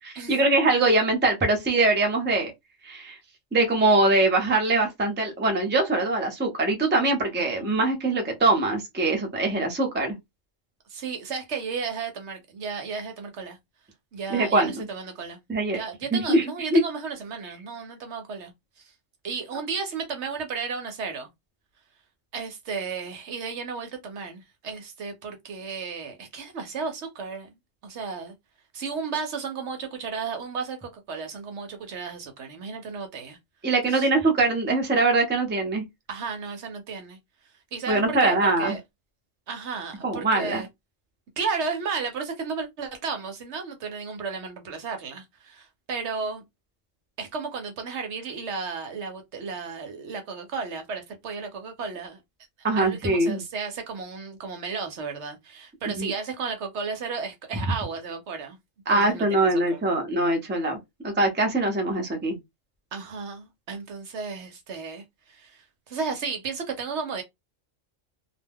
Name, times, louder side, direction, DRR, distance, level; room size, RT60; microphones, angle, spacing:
voice 1, 0.0-2.5 2.8-3.2 3.5-10.2 14.3-14.8 15.5-15.8 16.1-16.4 16.7-16.8 33.6-35.8 37.9-38.7 40.0-40.6 52.6-53.4 56.0-56.1 58.9-60.8 61.0-62.4, right 2 dB, 10° right, 0.5 m, -22 dB
voice 2, 7.4-7.7 10.9-13.6 14.1-15.4 15.7-18.9 19.2-21.3 22.3-27.5 27.8-28.3 28.7-33.4 33.9-34.1 36.1-37.2 37.7-38.8 39.5-40.7 41.4-46.4 47.2-52.2 52.7-58.6 58.9-59.8 62.9-67.2, right 5 dB, 65° right, 0.9 m, -34 dB
2.4 x 2.2 x 3.4 m
omnidirectional pair, 1.3 m